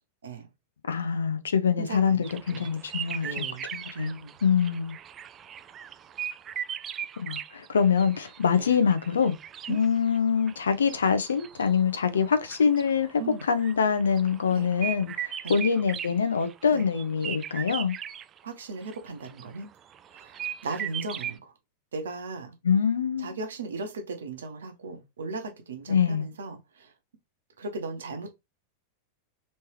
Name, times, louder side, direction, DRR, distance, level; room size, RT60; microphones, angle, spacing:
voice 1, 0.9-3.4 3.7-4.1 4.4-5.0 7.2-9.3 9.7-13.1 13.5-17.9 22.6-23.4 25.9-26.3, left 6 dB, 70° left, 0.6 m, -24 dB
voice 2, 1.8-3.7 3.9-4.3 8.6-8.7 9.7-9.8 13.2-13.4 14.5-14.7 15.4-15.6 16.7-16.9 18.4-19.7 20.1-21.5 21.9-22.6 23.2-26.9 27.6-28.3, right 3 dB, 65° right, 0.9 m, -37 dB
sound 1, 2.2-18.4 18.8-21.3, right 9 dB, 25° right, 0.3 m, -38 dB
3.2 x 3.2 x 3.0 m
figure-of-eight pair, 90°, 0 cm